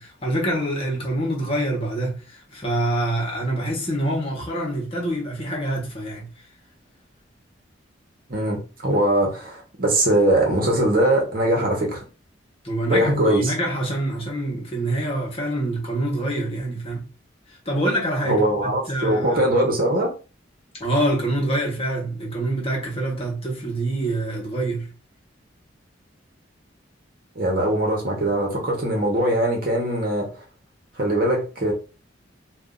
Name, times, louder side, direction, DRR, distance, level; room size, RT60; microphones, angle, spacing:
voice 1, 0.0-6.3 12.6-17.0 17.5-18.4 18.9-19.4 20.8-24.9, right 1 dB, 30° left, 1.1 m, -26 dB
voice 2, 8.3-12.0 12.9-13.5 18.2-20.1 27.3-30.3 31.0-31.7, right 1 dB, 50° right, 1.1 m, -21 dB
2.7 x 2.4 x 3.7 m
head